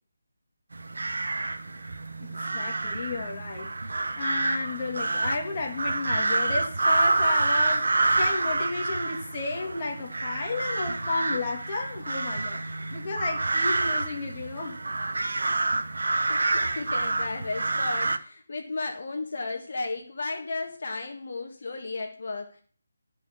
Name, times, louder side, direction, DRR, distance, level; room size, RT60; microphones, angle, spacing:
sound 1, 0.7-18.2, right 2 dB, 75° right, 1.1 m, -28 dB
voice 1, 2.2-3.7 4.2-7.9 8.2-12.6 12.9-14.8, left 3 dB, 25° left, 2.1 m, -33 dB
voice 2, 16.3-22.6, left 3 dB, 50° left, 1.7 m, -34 dB
13.0 x 5.2 x 7.2 m
figure-of-eight pair, 170°, 0 cm